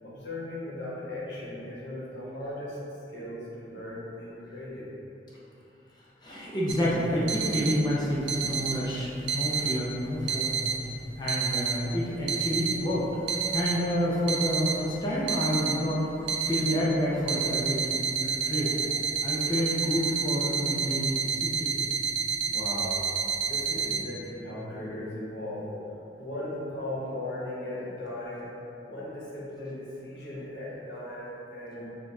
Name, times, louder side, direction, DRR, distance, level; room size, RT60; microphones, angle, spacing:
voice 1, 0.0-2.8 3.1-4.9 18.4-18.9 22.4-23.0 23.5-25.7 26.2-28.5 28.9-31.9, left 1 dB, 90° left, -6 dB, 1.2 m, -37 dB
voice 2, 6.2-10.7 11.2-16.1 16.4-18.7 19.2-21.8, equal, 25° left, -6 dB, 0.6 m, -29 dB
sound 1, 6.7-24.0, right 6 dB, 90° right, 0.5 m, -30 dB
4.9 x 2.6 x 3.5 m, 2.9 s
head